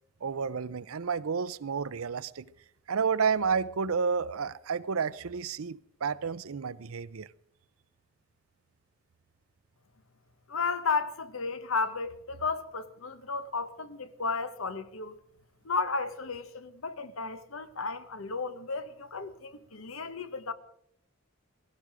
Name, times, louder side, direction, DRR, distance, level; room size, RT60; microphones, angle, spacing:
voice 1, 0.2-2.4 2.9-7.3, right 5 dB, 85° right, 0.6 m, -30 dB
voice 2, 10.5-15.2 15.6-20.5, left 4 dB, 75° left, 1.1 m, -33 dB
17.0 x 17.0 x 4.9 m
head